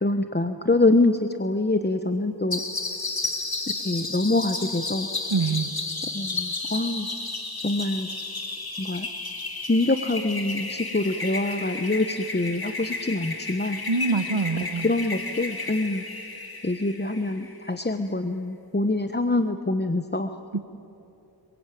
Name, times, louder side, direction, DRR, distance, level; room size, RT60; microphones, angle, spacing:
voice 1, 0.0-2.6 3.8-5.1 6.1-7.1 7.6-8.1 8.8-9.1 9.7-13.8 14.6-16.0 16.6-20.3, left 2 dB, 25° left, 8 dB, 0.9 m, -25 dB
sound 1, 2.5-17.7, left 3 dB, 55° left, 2.3 m, -33 dB
voice 2, 5.3-5.7 13.9-14.9 20.5-20.6, right 4 dB, 80° right, 9 dB, 1.5 m, -25 dB
27.0 x 22.5 x 9.2 m, 2.9 s
wide cardioid pair, 50°, 44 cm